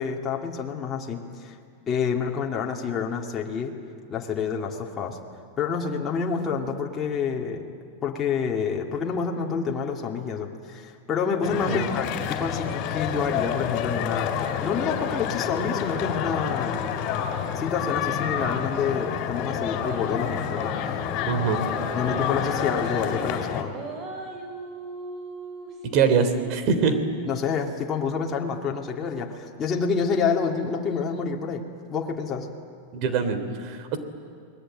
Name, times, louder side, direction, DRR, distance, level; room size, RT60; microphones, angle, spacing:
voice 1, 0.0-1.6 1.9-3.7 4.1-5.2 5.6-7.6 8.0-16.8 17.5-21.1 21.9-23.7 27.3-31.6 31.9-32.5, left 6 dB, 25° left, -1 dB, 2.8 m, -28 dB
sound 1, 11.4-23.6, left 8 dB, 50° left, 3.8 m, -29 dB
sound 2, 19.8-21.2 21.6-23.3 23.7-25.7, right 3 dB, 30° right, 4.7 m, -38 dB
voice 2, 21.3-21.6 25.9-27.0 32.9-34.0, right 6 dB, 50° right, 10 dB, 3.2 m, -23 dB
30.0 x 20.5 x 9.1 m, 2.2 s
supercardioid pair, 125°, 0 cm